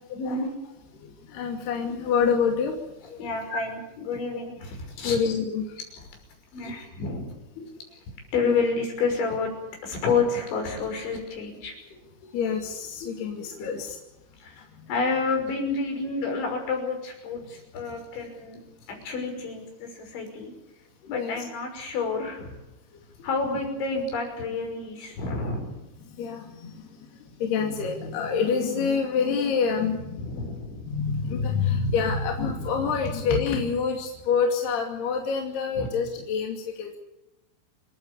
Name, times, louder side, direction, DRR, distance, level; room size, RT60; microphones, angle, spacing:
voice 1, 0.1-0.5 3.2-5.2 6.5-7.3 8.3-9.5 9.8-11.7 13.6-13.7 14.4-14.6 14.9-18.6 18.9-20.5 21.1-22.6 23.2-25.8 30.2-30.9 35.8-35.9, left 4 dB, 80° left, 3 dB, 8.3 m, -29 dB
voice 2, 1.0-2.8 3.1-3.2 3.5-3.6 5.0-5.8 6.7-6.8 7.6-7.7 8.4-8.6 12.2-14.0 21.0-21.4 26.0-26.9 27.4-30.3 30.8-37.0, left 5 dB, 65° left, 2 dB, 4.5 m, -27 dB
28.5 x 15.0 x 8.5 m, 0.95 s
omnidirectional pair, 5.2 m